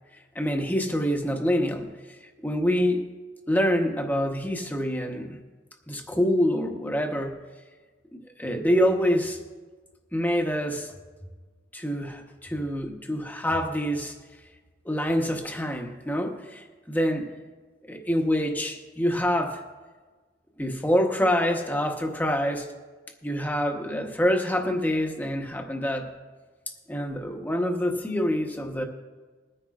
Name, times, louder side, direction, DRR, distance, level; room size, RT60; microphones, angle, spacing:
voice 1, 0.3-1.9 2.4-3.1 3.5-5.4 5.9-7.4 8.1-9.4 10.1-10.9 11.7-14.1 14.8-17.3 17.9-19.6 20.6-22.7 23.2-26.1 26.9-28.8, equal, 10° left, 3 dB, 1.1 m, -26 dB
21.5 x 9.9 x 2.5 m, 1.3 s
head